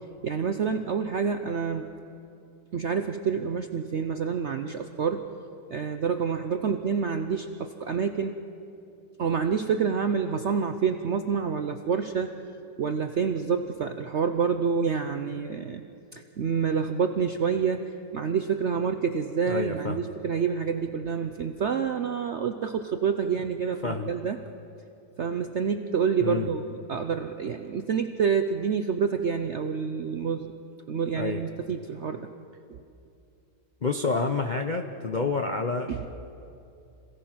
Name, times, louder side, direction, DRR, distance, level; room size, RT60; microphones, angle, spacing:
voice 1, 0.2-1.9 2.7-5.2 5.7-8.4 9.2-12.4 12.8-15.8 16.1-24.4 25.2-26.6 26.9-30.5 30.9-32.3 32.7-32.8 35.9-36.0, right 6 dB, 65° right, 7 dB, 0.7 m, -28 dB
voice 2, 19.5-20.0 23.8-24.1 26.2-26.5 31.1-31.4 33.8-36.1, left 4 dB, 50° left, 3 dB, 0.5 m, -28 dB
26.5 x 16.5 x 5.8 m, 2.7 s
omnidirectional pair, 1.9 m